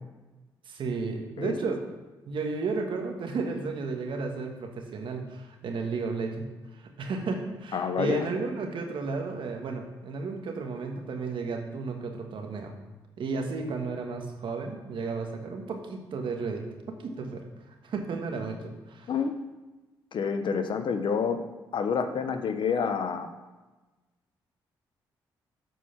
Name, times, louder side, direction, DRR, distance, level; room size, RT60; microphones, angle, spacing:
voice 1, 0.7-1.8 2.2-6.4 6.7-12.7 13.2-16.6 17.0-17.4 17.8-19.1, right 4 dB, 65° right, 3 dB, 1.4 m, -33 dB
voice 2, 7.7-8.3 19.1-19.3 20.1-21.4 21.7-23.3, left 6 dB, 60° left, 8 dB, 0.8 m, -28 dB
8.1 x 4.7 x 5.7 m, 1.2 s
supercardioid pair, 60°, 9 cm